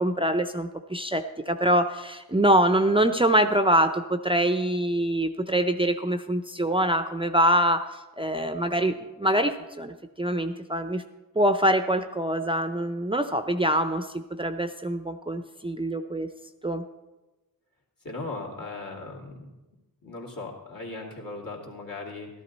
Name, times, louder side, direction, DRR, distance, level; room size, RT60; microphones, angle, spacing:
voice 1, 0.0-7.9 8.2-11.0 11.4-16.3 16.6-16.8, right 1 dB, 15° right, 8 dB, 0.5 m, -24 dB
voice 2, 18.0-19.5 20.0-22.3, left 3 dB, 65° left, -2 dB, 2.6 m, -38 dB
13.0 x 12.0 x 4.1 m, 1.1 s
wide cardioid pair, 85°, 36 cm